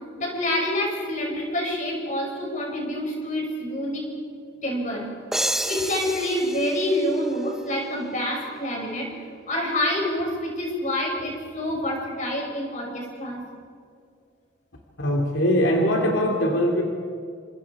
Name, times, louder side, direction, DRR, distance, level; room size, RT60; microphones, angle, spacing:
voice 1, 0.2-4.1 4.6-5.1 5.5-9.1 9.5-13.4, left 1 dB, 40° left, 0 dB, 6.5 m, -27 dB
sound 1, 5.3-8.0, right 1 dB, ahead, 0.9 m, -30 dB
voice 2, 15.0-16.8, equal, 85° left, 1 dB, 2.7 m, -21 dB
29.0 x 26.5 x 4.9 m, 2.2 s
head